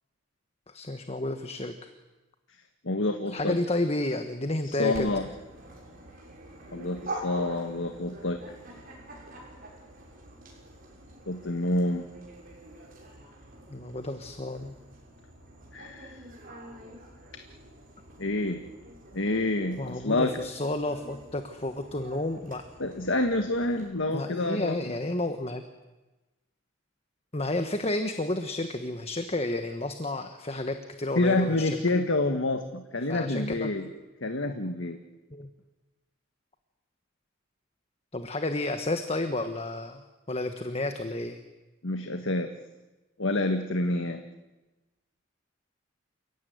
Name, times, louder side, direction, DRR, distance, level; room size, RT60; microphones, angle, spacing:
voice 1, 0.7-1.9 3.3-5.1 13.7-14.8 19.8-22.6 24.1-25.6 27.3-31.8 33.1-33.7 35.3-35.5 38.1-41.4, left 2 dB, 30° left, 8 dB, 1.4 m, -31 dB
voice 2, 2.8-3.6 4.8-5.3 6.7-8.4 11.3-12.1 15.7-16.2 18.2-18.6 19.1-20.3 22.8-25.0 31.1-33.9 34.2-35.0 41.8-42.5 43.2-44.2, left 2 dB, 75° left, 6 dB, 1.6 m, -28 dB
Dog, 4.9-23.9, right 1 dB, 45° right, 6.9 m, -46 dB
29.5 x 16.5 x 9.5 m, 1.1 s
head